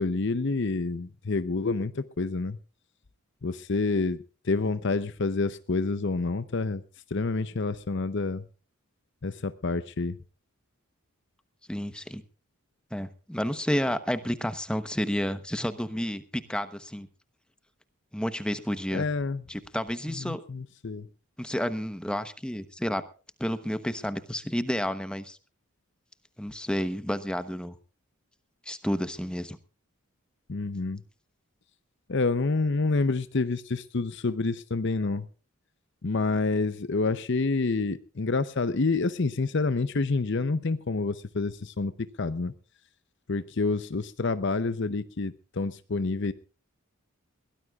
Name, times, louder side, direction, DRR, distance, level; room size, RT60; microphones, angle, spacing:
voice 1, 0.0-2.6 3.4-4.2 4.4-6.8 7.1-8.4 9.2-10.2 18.9-19.4 20.1-21.1 30.5-31.0 32.1-35.3 36.0-41.9 42.2-42.5 43.3-46.3, left 3 dB, 55° left, 12 dB, 0.7 m, -28 dB
voice 2, 11.7-12.2 12.9-17.1 18.1-19.1 19.5-20.4 21.4-23.0 23.4-25.4 26.4-27.8 28.7-29.6, equal, 5° left, 11 dB, 0.9 m, -30 dB
22.0 x 17.5 x 2.4 m, 0.35 s
head